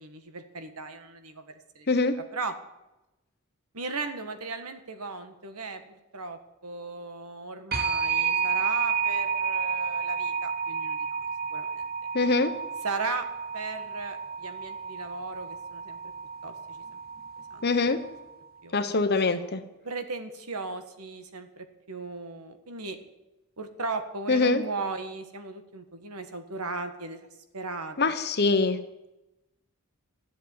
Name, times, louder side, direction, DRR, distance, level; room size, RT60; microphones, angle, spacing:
voice 1, 0.0-1.4 1.7-1.9 2.2-2.5 3.7-11.2 11.5-11.9 12.8-13.3 13.5-16.0 16.4-17.0 17.5-17.7 18.6-19.0 19.8-23.0 23.6-27.3 27.5-28.1, right 3 dB, 80° right, 8 dB, 1.6 m, -37 dB
voice 2, 1.9-2.2 12.1-12.5 17.6-18.0 18.7-19.6 24.3-24.6 28.0-28.8, left 3 dB, 45° left, 10 dB, 1.1 m, -24 dB
sound 1, 7.7-18.3, right 6 dB, 45° right, 1.2 m, -31 dB
13.0 x 8.0 x 9.6 m, 0.97 s
head